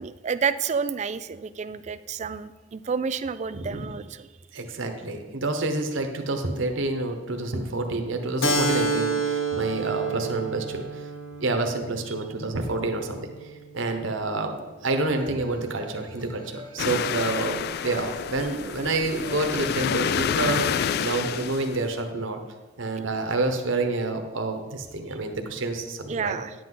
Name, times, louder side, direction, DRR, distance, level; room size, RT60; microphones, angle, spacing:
voice 1, 0.0-4.3 26.1-26.5, right 6 dB, 35° right, 14 dB, 0.3 m, -30 dB
voice 2, 3.5-3.9 4.5-11.0 11.4-13.3 13.7-14.6 14.8-22.4 22.8-26.4, right 2 dB, 70° right, 5 dB, 1.1 m, -28 dB
Keyboard (musical), 8.4-13.5, right 3 dB, 80° left, 1.0 m, -29 dB
sound 1, 15.2-21.8, right 1 dB, 25° left, 2.4 m, -48 dB
sound 2, 16.8-22.0, left 8 dB, 55° left, 0.3 m, -28 dB
10.5 x 7.8 x 3.9 m, 1.2 s
head